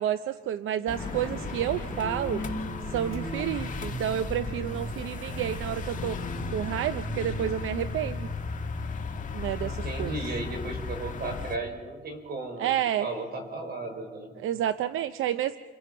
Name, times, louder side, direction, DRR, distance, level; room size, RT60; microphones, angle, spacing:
voice 1, 0.0-2.4 2.9-6.2 6.5-8.3 9.3-10.1 12.6-13.1 14.4-15.6, right 11 dB, 75° right, 12 dB, 0.7 m, -30 dB
sound 1, 0.9-11.6, left 4 dB, 40° left, 1.8 m, -36 dB
sound 2, 1.0-7.6, left 2 dB, 10° left, 5.8 m, -41 dB
sound 3, 2.0-4.9 5.3-7.5, right 1 dB, 25° right, 7.8 m, -38 dB
voice 2, 9.6-12.7 13.0-14.4, right 2 dB, 50° right, 5 dB, 5.3 m, -35 dB
29.5 x 26.5 x 5.5 m, 1.4 s
cardioid pair, 120°, 21 cm